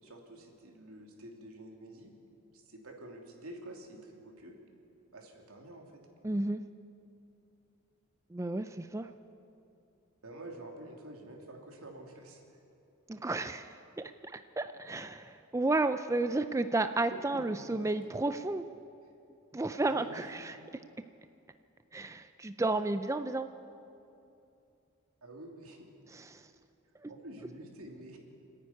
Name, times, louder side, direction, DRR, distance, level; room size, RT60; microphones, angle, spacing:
voice 1, 0.0-2.1 2.5-4.5 5.1-6.0 10.2-12.4 17.3-17.9 19.8-20.2 25.2-25.9 27.1-28.2, right 1 dB, 85° right, 1 dB, 3.0 m, -48 dB
voice 2, 6.2-6.6 8.3-9.1 13.1-18.6 19.5-20.5 21.9-23.5 26.1-26.4 27.0-27.1, right 2 dB, 15° right, 9 dB, 0.4 m, -32 dB
27.5 x 9.9 x 9.5 m, 2.7 s
head